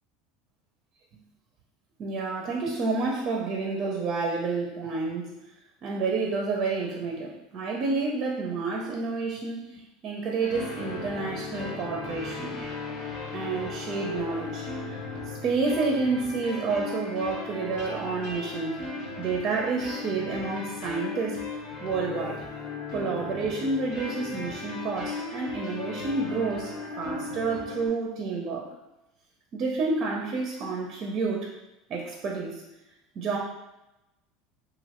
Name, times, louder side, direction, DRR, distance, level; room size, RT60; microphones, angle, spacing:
voice 1, 2.0-5.3 5.8-12.6 13.3-18.8 19.2-22.4 22.9-28.7 29.5-31.5 31.9-32.6 33.2-33.4, right 4 dB, 40° right, -1 dB, 0.4 m, -29 dB
sound 1, 10.4-27.9, left 4 dB, 55° left, 0.7 m, -37 dB
3.0 x 2.5 x 2.9 m, 0.96 s
supercardioid pair, 145°, 0 cm